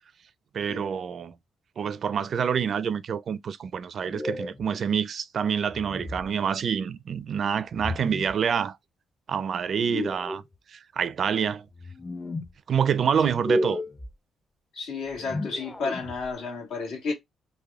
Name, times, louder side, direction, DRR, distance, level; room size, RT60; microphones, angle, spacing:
voice 1, 0.5-1.3 1.8-8.8 9.3-10.4 10.7-11.7 12.7-13.8, right 7 dB, 55° right, 0.4 m, -27 dB
sound 1, 4.0-4.7 5.7-6.3 7.7-8.4 9.7-10.5 11.7-12.5 13.3-14.1 15.1-16.3, left 1 dB, 15° left, 0.5 m, -33 dB
voice 2, 14.7-17.1, left 4 dB, 85° left, 1.8 m, -32 dB
3.4 x 2.1 x 3.5 m
cardioid pair, 90°, 0 cm